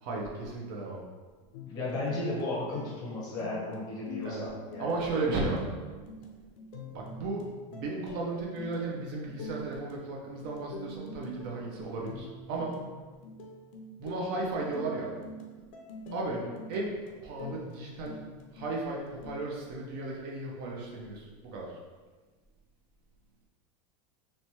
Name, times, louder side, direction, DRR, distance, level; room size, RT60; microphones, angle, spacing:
voice 1, 0.0-1.0 4.2-4.4 4.8-5.7 6.9-7.4 7.7-12.8 14.0-15.1 16.1-16.4 16.7-16.9 17.2-18.2 18.5-21.8, right 3 dB, 45° right, -2 dB, 0.4 m, -35 dB
sound 1, 1.5-19.5, left 1 dB, 80° left, 0.5 m, -45 dB
voice 2, 1.7-5.1 16.3-16.5, left 2 dB, 25° left, -5 dB, 0.6 m, -35 dB
2.9 x 2.2 x 2.7 m, 1.4 s
supercardioid pair, 170°, 17 cm